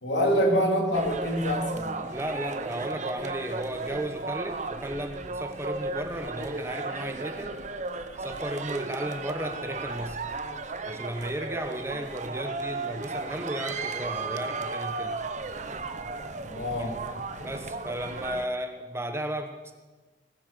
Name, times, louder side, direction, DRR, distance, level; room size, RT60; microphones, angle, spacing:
voice 1, 0.0-2.0 16.5-17.1, equal, 85° left, 1 dB, 3.2 m, -26 dB
sound 1, 0.9-18.5, right 3 dB, 40° right, 0.9 m, -35 dB
voice 2, 2.1-7.5 8.2-10.3 10.8-15.2 16.8-16.9 17.4-19.7, right 1 dB, 15° right, 6 dB, 1.2 m, -34 dB
19.5 x 9.9 x 6.9 m, 1.3 s
head